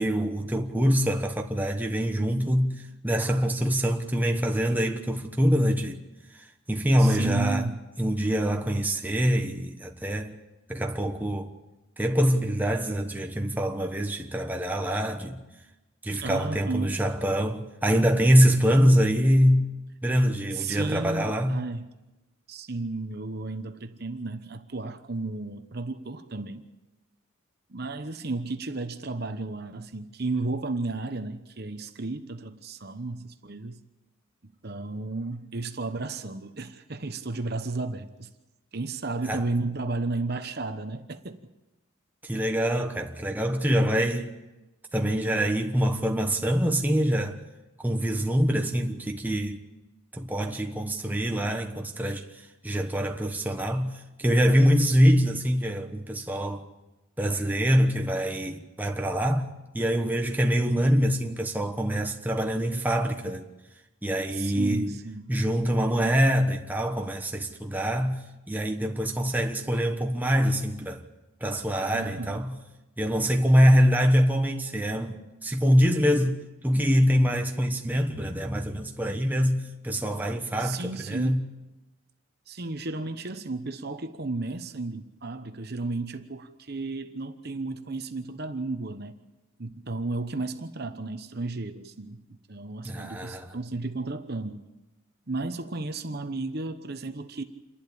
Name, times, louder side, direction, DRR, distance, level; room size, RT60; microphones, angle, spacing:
voice 1, 0.0-2.7 3.0-6.0 6.3-7.7 8.0-10.3 10.7-11.5 12.0-15.4 16.0-19.7 20.0-21.6 39.3-39.4 42.2-44.3 44.9-47.4 47.8-49.6 50.1-52.2 52.6-56.6 57.2-63.4 64.0-65.0 65.3-68.2 68.5-71.0 71.4-72.6 73.0-76.4 76.6-81.4 92.8-93.5, equal, 10° right, 1.2 m, -24 dB
voice 2, 7.0-7.8 16.2-17.0 20.5-21.9 22.5-26.7 27.7-33.8 34.4-38.3 38.7-41.4 64.3-65.3 71.9-72.5 80.6-81.4 82.5-89.2 89.6-92.2 92.5-94.6 95.3-97.4, right 3 dB, 50° right, 1.0 m, -33 dB
28.0 x 11.5 x 8.7 m
head